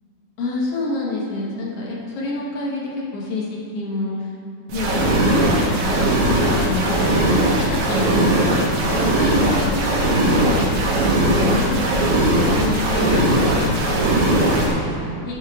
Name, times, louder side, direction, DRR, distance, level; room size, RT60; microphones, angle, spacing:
voice 1, 0.4-4.3 4.7-10.8 11.3-15.4, left 2 dB, 60° left, -4 dB, 1.7 m, -28 dB
sound 1, 4.7-14.7, right 1 dB, 65° right, 2.6 m, -19 dB
10.0 x 8.0 x 3.5 m, 2.4 s
omnidirectional pair, 3.9 m